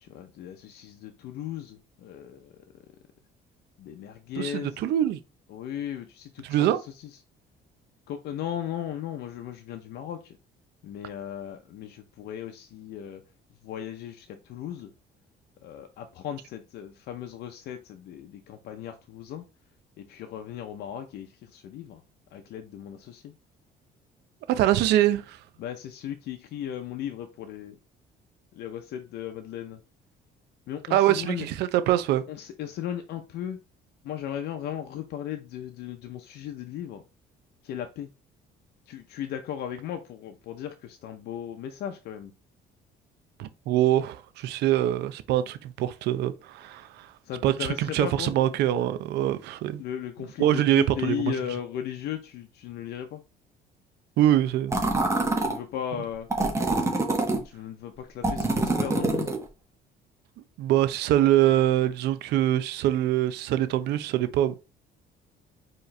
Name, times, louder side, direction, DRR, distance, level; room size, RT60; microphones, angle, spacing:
voice 1, 0.0-2.5 3.8-4.9 5.5-6.7 7.0-7.1 8.1-10.4 10.8-13.2 13.6-14.9 15.6-19.4 20.0-22.0 22.3-23.3 25.6-27.8 28.5-29.8 30.7-31.5 32.3-33.6 34.0-37.0 37.6-38.1 38.9-42.3 47.2-48.3 49.8-53.2 55.4-56.3 57.4-59.4, left 10 dB, 70° left, 0.6 m, -36 dB
voice 2, 4.4-5.2 6.4-6.8 24.5-25.4 30.9-32.2 43.4-47.1 47.4-49.8 50.4-51.3 54.2-54.8 60.6-64.7, right 13 dB, 80° right, 0.6 m, -24 dB
sound 1, 54.7-55.6 56.3-57.4 58.2-59.4, right 2 dB, 15° right, 1.1 m, -25 dB
4.6 x 3.1 x 3.2 m
cardioid pair, 110°, 17 cm